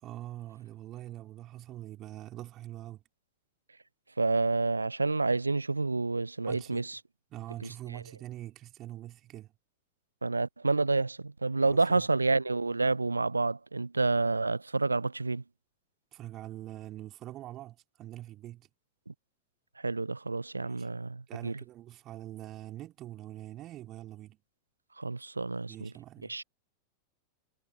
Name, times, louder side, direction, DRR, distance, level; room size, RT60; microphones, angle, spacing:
voice 1, 0.0-3.0 6.4-6.9 7.3-9.5 11.6-12.1 16.1-18.7 20.6-20.9 21.3-24.4 25.7-26.4, right 14 dB, 35° right, 3.0 m, -44 dB
voice 2, 4.2-7.0 10.2-15.4 19.8-21.6 25.0-25.9 26.3-26.4, right 3 dB, 80° right, 0.3 m, -29 dB
figure-of-eight pair, 90°, 0 cm